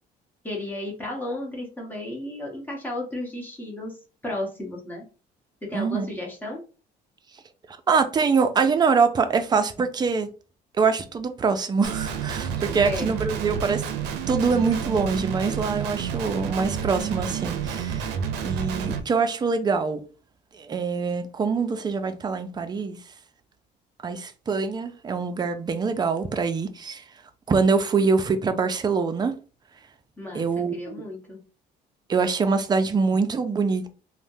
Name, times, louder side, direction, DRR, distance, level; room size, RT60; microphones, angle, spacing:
voice 1, 0.4-4.0 4.2-5.1 5.6-6.6 12.8-13.1 30.2-31.4, left 1 dB, 10° left, 1.2 m, -33 dB
voice 2, 5.7-6.1 7.7-10.3 10.7-13.8 14.3-18.1 18.4-20.1 20.5-23.0 24.0-27.0 27.5-29.3 30.3-30.8 32.1-33.9, right 5 dB, 25° right, 0.4 m, -24 dB
Guitar, 11.8-19.0, right 7 dB, 85° right, 0.5 m, -30 dB
3.2 x 2.1 x 2.6 m
cardioid pair, 110°, 17 cm